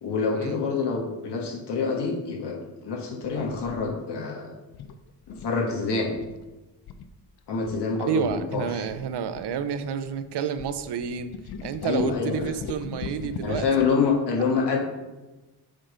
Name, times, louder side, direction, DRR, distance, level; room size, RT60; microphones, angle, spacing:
voice 1, 0.0-4.5 5.3-6.1 7.5-8.9 11.8-12.5 13.4-14.8, left 5 dB, 85° left, -1 dB, 1.5 m, -26 dB
sound 1, 3.2-3.8 4.7-5.6 6.2-6.4 6.9-7.1 7.4-7.5 7.7-7.9 8.3-10.1 10.6-13.9, left 6 dB, 70° left, 0.6 m, -40 dB
voice 2, 8.1-11.3 11.6-13.9, right 7 dB, 90° right, 11 dB, 0.6 m, -29 dB
7.4 x 3.8 x 5.0 m, 1.1 s
wide cardioid pair, 160°, 40 cm